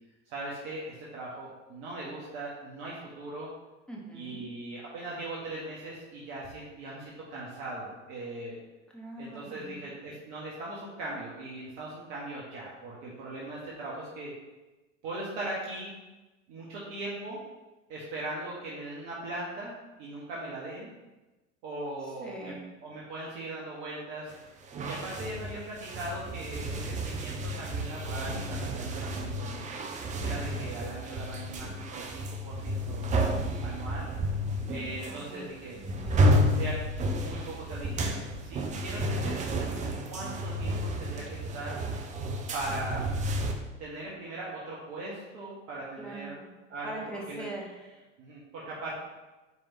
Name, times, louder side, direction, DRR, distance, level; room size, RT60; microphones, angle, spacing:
voice 1, 0.3-3.5 4.1-8.6 9.2-14.3 15.0-15.9 16.5-17.4 17.9-20.9 21.6-22.5 22.8-24.3 24.8-29.7 30.2-33.0 33.6-34.1 34.7-35.8 36.6-36.8 37.1-41.8 42.5-43.1 43.8-46.3 46.7-47.4 48.2-49.0, right 2 dB, 45° right, -6 dB, 1.6 m, -39 dB
voice 2, 3.9-4.4 8.9-9.9 22.2-22.7 35.1-36.7 46.0-46.5 46.8-48.0, right 1 dB, ahead, -2 dB, 1.4 m, -43 dB
sound 1, 24.3-24.4 24.7-43.5, equal, 20° right, 0.6 m, -31 dB
9.0 x 3.6 x 3.0 m, 1.1 s
figure-of-eight pair, 85°, 37 cm